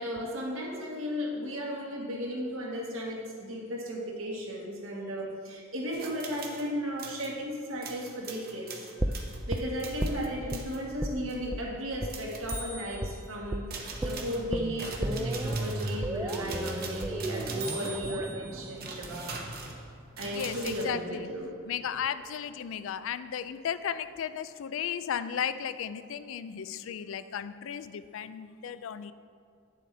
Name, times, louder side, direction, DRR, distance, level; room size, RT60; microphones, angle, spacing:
voice 1, 0.0-8.7 9.5-19.3 20.2-21.6, equal, 70° right, -2 dB, 1.6 m, -35 dB
sound 1, 5.9-6.7 7.0-7.3 7.8-10.8 11.3-11.5 12.1-13.3 13.7-20.8, right 3 dB, 45° right, 1.0 m, -42 dB
sound 2, 9.0-10.6 11.0-11.2 11.5-11.6 12.0-12.1 12.5-12.6 13.0-13.2 13.5-13.6 14.0-20.0 20.3-20.4, right 1 dB, 10° right, 0.3 m, -34 dB
voice 2, 20.2-21.3 21.7-29.1, left 8 dB, 65° left, 13 dB, 0.3 m, -35 dB
9.2 x 7.5 x 3.4 m, 2.4 s
head